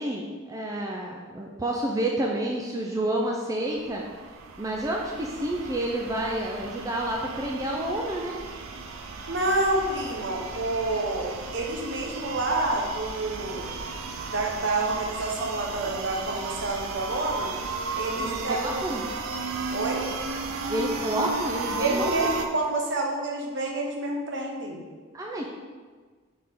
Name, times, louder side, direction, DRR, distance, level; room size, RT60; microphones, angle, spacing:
voice 1, 0.0-4.0 4.6-8.4 18.2-19.0 20.7-22.3 25.1-25.5, right 1 dB, 15° right, -1 dB, 0.4 m, -29 dB
sound 1, 3.7-22.5, right 4 dB, 80° right, 0.5 m, -35 dB
voice 2, 9.3-13.7 14.3-17.5 17.9-18.8 19.7-20.1 21.8-24.8, right 2 dB, 60° right, 0 dB, 0.9 m, -28 dB
6.2 x 4.3 x 3.6 m, 1.5 s
head